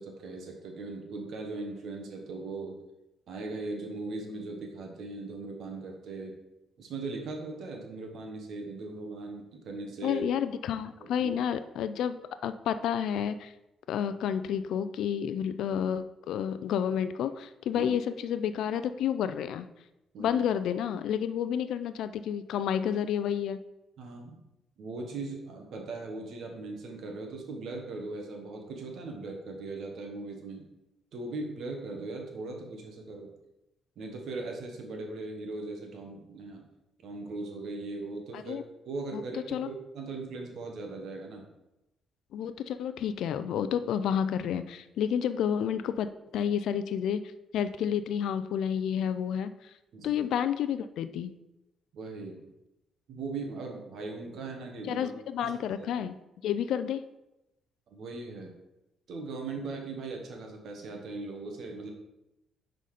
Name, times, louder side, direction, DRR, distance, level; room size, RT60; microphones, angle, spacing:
voice 1, 0.0-2.8 3.3-6.4 6.8-10.2 11.0-11.6 17.7-17.9 20.1-20.4 24.0-24.4 24.8-30.7 31.1-33.3 34.0-36.7 37.0-38.6 38.8-41.5 49.9-50.3 51.9-52.5 53.1-55.5 55.8-55.9 57.9-58.5 59.1-61.9, right 3 dB, 70° right, 2 dB, 1.3 m, -39 dB
voice 2, 10.0-12.2 12.4-13.5 13.9-19.7 20.2-23.6 38.3-38.6 39.1-39.7 42.3-46.1 46.3-49.5 50.0-51.3 54.9-56.2 56.4-57.0, left 8 dB, 80° left, 12 dB, 0.4 m, -30 dB
5.5 x 3.9 x 4.9 m, 0.93 s
cardioid pair, 90°, 0 cm